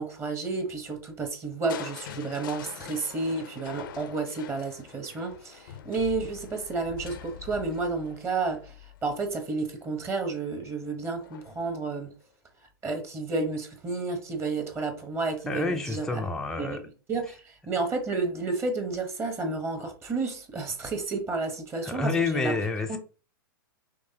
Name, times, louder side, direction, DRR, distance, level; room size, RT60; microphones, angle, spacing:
voice 1, 0.0-12.1 12.8-16.2 16.6-16.8 17.1-22.5 22.9-23.0, right 3 dB, 20° right, 1.0 m, -31 dB
Crushing, 1.7-9.6 11.2-11.7 12.2-12.3, left 9 dB, 65° left, 0.6 m, -43 dB
voice 2, 15.5-16.8 21.8-23.0, left 3 dB, 5° left, 0.5 m, -28 dB
5.3 x 3.2 x 2.8 m
hypercardioid pair, 115°, 12 cm